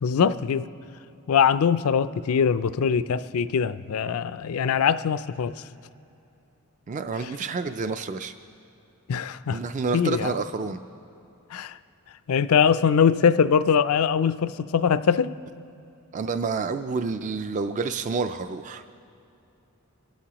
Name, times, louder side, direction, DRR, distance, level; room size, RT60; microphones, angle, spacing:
voice 1, 0.0-0.6 1.3-5.5 9.1-9.6 9.9-10.3 11.5-11.8 12.3-15.3, left 7 dB, 75° left, 14 dB, 0.4 m, -22 dB
voice 2, 6.9-8.3 9.5-10.8 16.1-18.8, right 4 dB, 35° right, 9 dB, 0.3 m, -29 dB
27.0 x 13.0 x 3.0 m, 2.8 s
head